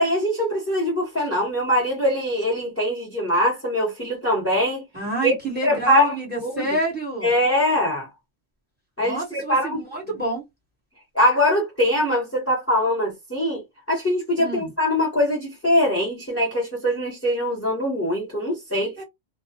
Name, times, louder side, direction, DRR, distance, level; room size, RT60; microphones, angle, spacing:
voice 1, 0.0-4.8 5.2-5.3 5.6-6.1 6.4-6.7 7.2-8.1 9.0-9.8 11.1-13.6 13.9-18.9, left 1 dB, 15° left, 0.8 m, -22 dB
voice 2, 4.9-7.3 9.0-10.4 14.4-14.7 19.0-19.1, right 1 dB, 10° right, 1.1 m, -28 dB
2.2 x 2.2 x 2.7 m
omnidirectional pair, 1.2 m